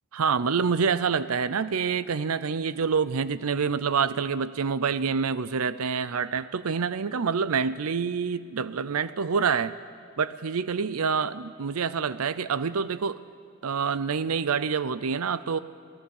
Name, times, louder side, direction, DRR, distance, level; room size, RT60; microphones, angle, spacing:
voice 1, 0.1-9.7 10.2-13.2 13.6-15.6, right 6 dB, 85° right, 15 dB, 0.6 m, -27 dB
28.5 x 17.5 x 7.2 m, 2.2 s
head